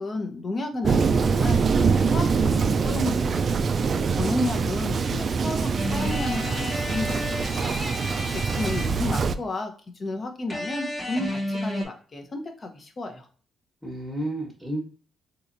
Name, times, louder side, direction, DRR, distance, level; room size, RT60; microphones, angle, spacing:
voice 1, 0.0-3.4 4.1-7.5 8.3-13.3, left 2 dB, 40° left, 4 dB, 0.8 m, -32 dB
Thunder, 0.8-9.3, right 5 dB, 45° right, 0.3 m, -24 dB
voice 2, 4.1-4.6 13.8-14.8, right 1 dB, ahead, -3 dB, 1.2 m, -34 dB
sound 1, 5.8-9.3 10.5-11.8, left 1 dB, 20° left, 1.1 m, -32 dB
3.8 x 2.9 x 2.6 m, 0.42 s
cardioid pair, 90°, 0 cm